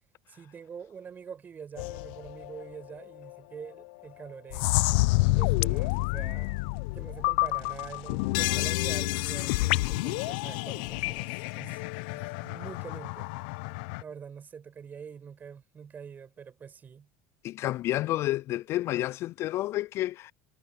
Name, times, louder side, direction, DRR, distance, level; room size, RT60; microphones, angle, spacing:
voice 1, 0.3-4.7 5.3-6.6 6.9-11.8 12.1-13.3 14.0-17.1, right 7 dB, 30° right, 6.1 m, -45 dB
sound 1, 1.8-2.7 3.2-3.3 3.8-3.9 4.5-14.0, left 23 dB, 75° left, 0.8 m, -29 dB
voice 2, 17.4-20.3, left 15 dB, 50° left, 0.3 m, -30 dB
supercardioid pair, 95°, 6 cm